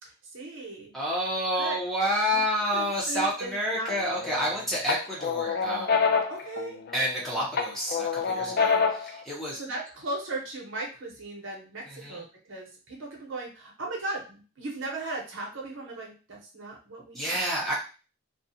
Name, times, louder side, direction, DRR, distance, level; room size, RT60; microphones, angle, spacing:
voice 1, 0.0-0.9 1.6-1.8 2.2-2.4 2.7-3.9 6.3-6.8 9.6-17.4, right 2 dB, 60° right, -1 dB, 0.8 m, -37 dB
voice 2, 0.9-6.0 6.9-9.6 11.9-12.2 17.1-17.7, equal, ahead, -6 dB, 0.7 m, -29 dB
sound 1, 3.9-4.5 4.9-7.2 7.6-9.2, left 5 dB, 45° left, 0.3 m, -26 dB
2.4 x 2.3 x 2.7 m, 0.35 s
head